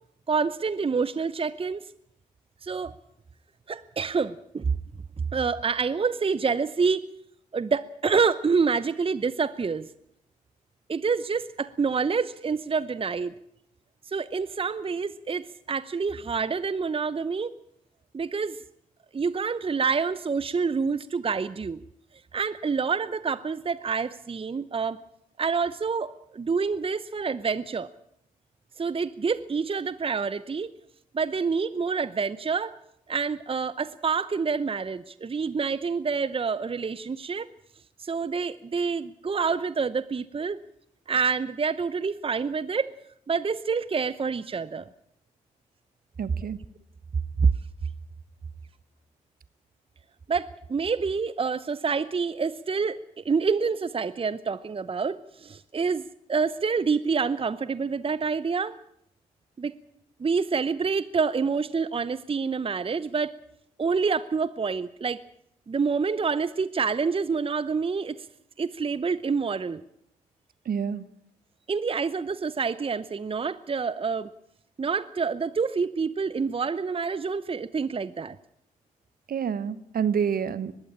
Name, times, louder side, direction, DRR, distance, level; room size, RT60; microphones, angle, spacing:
voice 1, 0.3-1.8 2.6-2.9 3.7-4.7 5.3-7.1 7.5-9.9 10.9-13.3 14.1-17.5 18.1-18.6 19.1-21.8 22.3-25.0 25.4-27.9 28.8-30.7 31.1-32.8 33.1-37.5 38.0-40.6 41.1-43.0 43.3-44.9 47.4-47.5 50.3-58.8 59.6-59.8 60.2-63.3 63.8-65.2 65.7-68.2 68.6-69.8 71.7-74.3 74.8-78.4, right 5 dB, 30° right, 17 dB, 0.8 m, -27 dB
voice 2, 46.2-46.6 70.6-71.1 79.3-80.7, right 7 dB, 55° right, 17 dB, 1.1 m, -28 dB
21.0 x 15.5 x 8.7 m, 0.73 s
hypercardioid pair, 40°, 18 cm